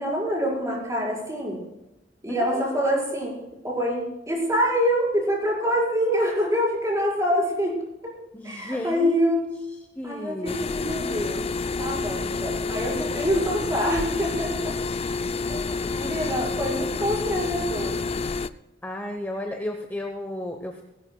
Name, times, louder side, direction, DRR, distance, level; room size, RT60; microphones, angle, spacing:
voice 1, 0.0-1.6 2.2-3.3 3.6-7.8 8.4-9.5 10.0-11.5 11.8-14.8 15.5-18.0, equal, 15° right, -3 dB, 5.3 m, -26 dB
voice 2, 2.3-2.6 8.3-9.4 10.0-10.6 18.8-20.8, left 1 dB, 10° left, 3 dB, 1.0 m, -33 dB
sound 1, 10.5-18.5, left 3 dB, 30° left, 0.4 m, -29 dB
19.0 x 16.0 x 2.3 m, 0.97 s
head